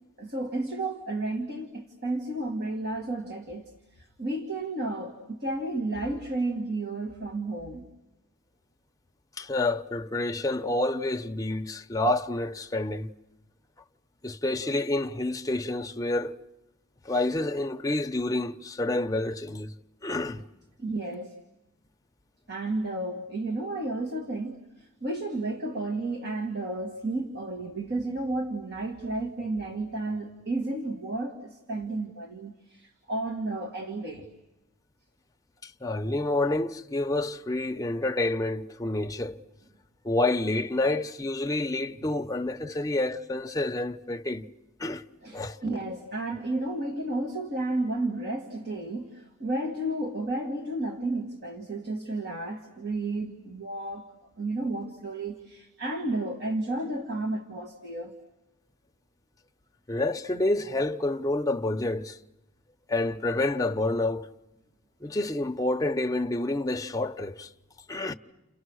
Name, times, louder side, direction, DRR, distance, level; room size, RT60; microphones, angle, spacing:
voice 1, 0.2-7.8 20.8-21.4 22.5-34.3 45.2-54.1 54.4-58.1, right 2 dB, 50° right, 2.1 m, -32 dB
voice 2, 9.4-13.1 14.2-16.4 17.0-19.7 20.0-20.4 35.6-39.4 40.0-44.4 44.8-45.0 45.3-45.6 59.9-62.2 62.9-64.3 65.0-67.5 67.9-68.1, left 2 dB, 15° left, 0.9 m, -28 dB
30.0 x 29.5 x 6.4 m
head